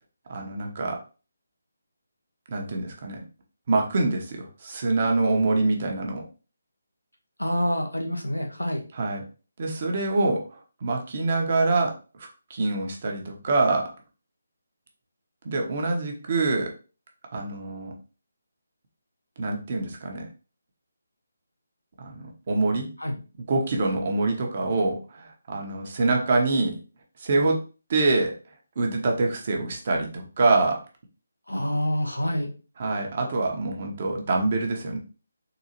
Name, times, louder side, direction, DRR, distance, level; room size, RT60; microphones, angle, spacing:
voice 1, 0.3-1.0 2.5-3.2 3.7-6.2 8.9-9.2 9.6-13.9 15.4-16.7 17.3-17.9 19.4-20.3 22.0-22.9 23.5-26.8 27.2-27.6 27.9-28.3 28.8-30.8 32.8-35.0, right 3 dB, 40° right, 2 dB, 0.9 m, -25 dB
voice 2, 7.4-8.8 23.0-23.2 31.5-32.5, equal, 90° left, 2 dB, 1.0 m, -27 dB
3.9 x 2.7 x 2.8 m, 0.34 s
figure-of-eight pair, 150°, 0 cm